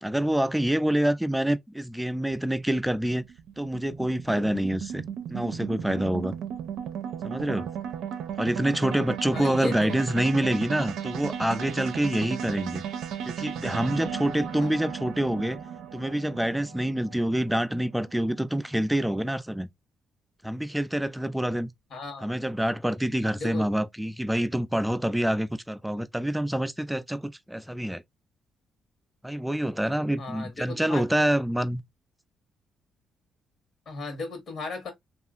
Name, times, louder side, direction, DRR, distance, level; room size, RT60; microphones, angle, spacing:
voice 1, 0.0-3.2 3.6-5.0 5.3-6.3 7.2-7.7 8.4-12.8 13.3-15.6 15.9-19.7 20.4-21.7 22.2-28.0 29.2-31.8, right 1 dB, 5° right, 0.3 m, -26 dB
sound 1, 2.3-18.7, right 8 dB, 80° right, 0.4 m, -35 dB
voice 2, 9.3-10.0 14.6-14.7 21.9-22.3 23.3-23.7 30.2-31.1 33.9-34.9, left 3 dB, 65° left, 1.2 m, -36 dB
2.7 x 2.4 x 2.4 m
cardioid pair, 90°, 0 cm